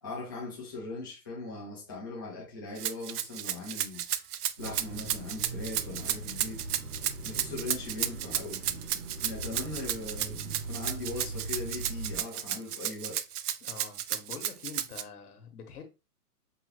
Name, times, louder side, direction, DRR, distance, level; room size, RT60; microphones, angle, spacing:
voice 1, 0.0-4.1 4.6-6.6 7.2-8.7 9.2-13.2, left 3 dB, 15° left, 0.6 m, -40 dB
Rattle (instrument), 2.8-15.0, right 11 dB, 75° right, 0.6 m, -33 dB
sound 1, 4.6-12.2, right 2 dB, 55° right, 1.1 m, -41 dB
voice 2, 13.6-15.8, left 6 dB, 70° left, 1.3 m, -45 dB
5.4 x 2.2 x 3.1 m
hypercardioid pair, 180°, 46 cm